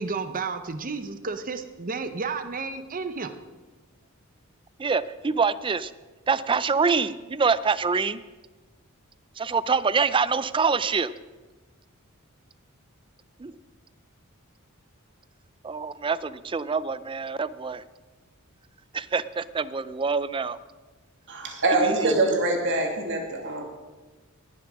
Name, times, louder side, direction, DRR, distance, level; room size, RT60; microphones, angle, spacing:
voice 1, 0.0-3.3, right 4 dB, 40° right, 9 dB, 0.8 m, -32 dB
voice 2, 4.8-5.9 6.3-8.2 9.4-11.1 13.4-13.5 15.6-17.8 18.9-20.6 21.8-22.1, right 5 dB, 25° right, 16 dB, 0.4 m, -25 dB
voice 3, 21.3-23.6, right 2 dB, 60° right, 2 dB, 2.6 m, -24 dB
19.5 x 7.4 x 6.1 m, 1.3 s
head